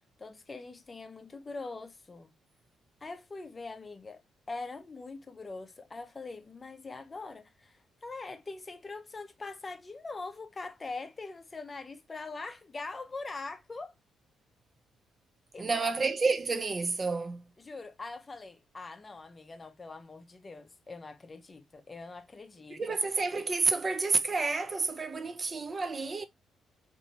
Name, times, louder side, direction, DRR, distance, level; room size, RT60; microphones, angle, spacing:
voice 1, 0.2-2.3 3.0-4.2 4.5-13.9 15.5-15.8 17.6-22.8, left 3 dB, 30° left, 0.5 m, -43 dB
voice 2, 15.6-17.4 22.7-26.3, right 4 dB, 35° right, 0.4 m, -30 dB
2.9 x 2.6 x 2.6 m
cardioid pair, 90°, 0 cm